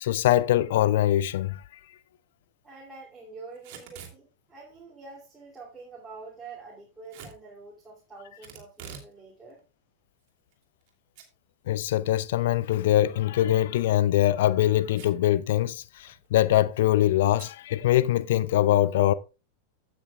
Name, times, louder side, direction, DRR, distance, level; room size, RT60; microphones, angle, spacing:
voice 1, 0.0-1.6 11.7-19.1, left 13 dB, 55° left, 0.5 m, -23 dB
voice 2, 2.6-9.6, right 4 dB, 10° right, 2.8 m, -46 dB
Packing tape duct tape / Tearing, 3.5-4.2 7.1-7.4 8.4-9.1 9.5-9.6 10.3-10.9 11.2-11.3 11.7-11.8 13.7-14.0 14.9-15.3 15.6-15.7 15.9-16.3 17.4-17.6, right 7 dB, 45° right, 2.7 m, -45 dB
15.5 x 6.2 x 2.4 m
figure-of-eight pair, 90°, 0 cm